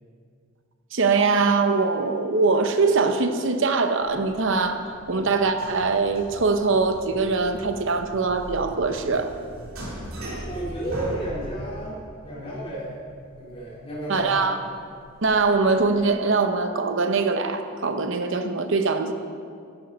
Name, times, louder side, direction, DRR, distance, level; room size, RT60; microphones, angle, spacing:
voice 1, 0.9-9.3 14.1-14.6 15.2-19.1, right 4 dB, 60° right, 8 dB, 0.8 m, -22 dB
sound 1, 4.0-16.2, right 1 dB, 80° right, 2.7 m, -40 dB
voice 2, 10.4-13.0 13.4-14.5, right 1 dB, 25° left, -7 dB, 3.0 m, -33 dB
10.5 x 9.1 x 5.2 m, 2.3 s
head